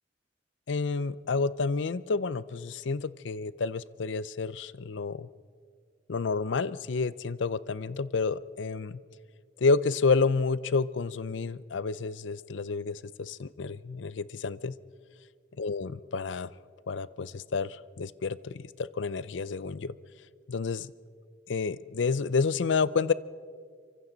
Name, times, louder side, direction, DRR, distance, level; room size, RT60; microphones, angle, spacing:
voice 1, 0.7-5.3 6.1-9.0 9.6-14.7 15.6-16.5 16.9-20.0 20.5-20.9 21.5-23.1, left 4 dB, 75° left, 18 dB, 0.5 m, -29 dB
27.0 x 24.5 x 4.0 m, 2.1 s
head